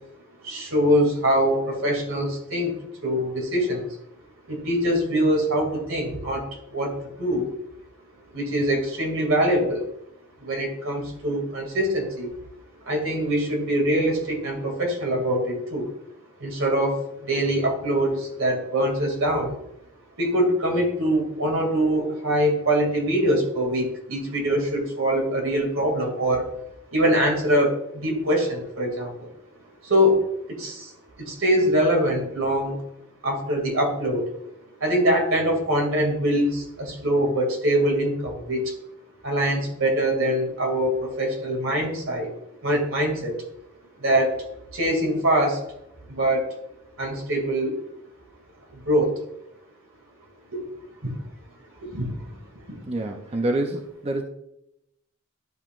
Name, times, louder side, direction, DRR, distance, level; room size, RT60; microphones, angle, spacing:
voice 1, 0.4-2.7 3.0-3.9 4.5-6.5 6.7-7.5 8.3-9.8 10.4-12.3 12.9-15.9 16.4-19.6 20.2-26.5 26.9-29.3 29.8-30.2 30.5-30.9 31.2-32.8 33.2-34.3 34.8-38.7 39.2-42.3 42.6-43.4 44.0-44.3 44.7-45.6 46.1-46.5 47.0-47.8 48.7-49.1 50.5-50.6 51.0-51.1 51.8-52.4 52.7-52.8, equal, 90° right, 1 dB, 2.3 m, -23 dB
voice 2, 52.9-54.2, right 1 dB, 30° right, 4 dB, 0.5 m, -27 dB
12.0 x 5.7 x 2.4 m, 0.81 s
head